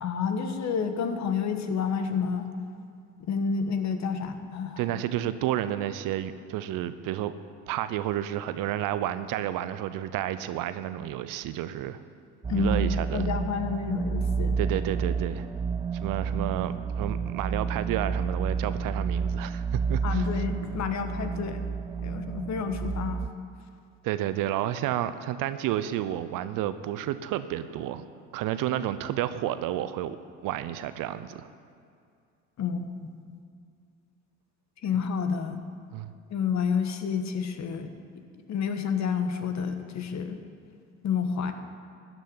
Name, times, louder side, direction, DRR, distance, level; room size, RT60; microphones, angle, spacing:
voice 1, 0.0-2.5 3.2-4.8 12.5-14.6 20.0-21.6 22.0-23.2 32.6-33.4 34.8-35.6 36.3-37.9 38.5-40.4 41.0-41.5, left 6 dB, 45° left, 8 dB, 1.4 m, -29 dB
voice 2, 4.8-7.3 7.7-12.0 12.5-13.3 14.6-15.5 16.0-20.3 24.0-28.0 28.3-30.2 30.4-31.5 35.9-36.1, right 12 dB, 60° right, 12 dB, 0.8 m, -31 dB
sound 1, 12.4-23.3, right 5 dB, 10° right, 0.4 m, -30 dB
13.0 x 6.2 x 9.5 m, 2.4 s
hypercardioid pair, 65°, 38 cm